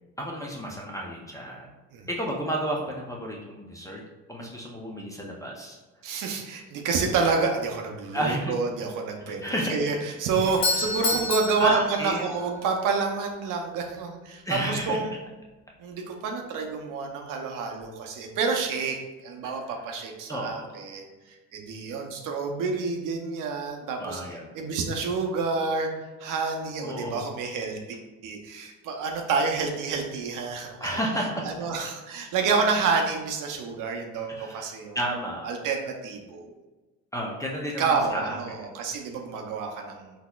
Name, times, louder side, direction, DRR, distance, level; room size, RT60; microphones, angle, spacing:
voice 1, 0.2-1.7 2.1-4.0 4.3-5.8 8.1-8.5 9.3-9.8 10.6-10.9 11.6-12.2 14.4-15.0 19.4-19.8 20.3-20.8 24.0-24.6 26.8-27.3 30.8-31.5 34.3-35.5 37.1-38.6, equal, 10° left, -2 dB, 0.5 m, -32 dB
voice 2, 6.0-9.4 9.7-14.4 14.7-15.1 15.8-21.0 21.5-24.2 24.5-25.9 26.2-28.0 28.2-30.9 31.4-35.0 35.4-36.5 37.8-40.1, right 4 dB, 60° right, 3 dB, 0.6 m, -28 dB
Doorbell, 10.4-12.6, left 3 dB, 50° left, 0.8 m, -29 dB
3.9 x 2.8 x 2.3 m, 1.2 s
supercardioid pair, 100°, 36 cm